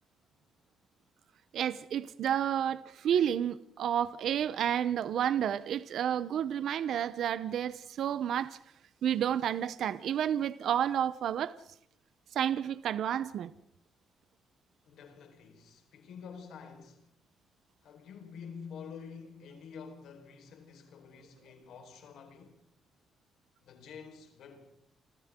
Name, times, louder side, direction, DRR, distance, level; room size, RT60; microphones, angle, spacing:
voice 1, 1.5-8.6 9.0-11.6 12.3-13.5, right 9 dB, 60° right, 0.7 m, -30 dB
voice 2, 14.8-17.1 17.8-22.6 23.6-24.7, left 6 dB, 70° left, 4.5 m, -48 dB
29.0 x 26.0 x 3.7 m
cardioid pair, 180°, 0 cm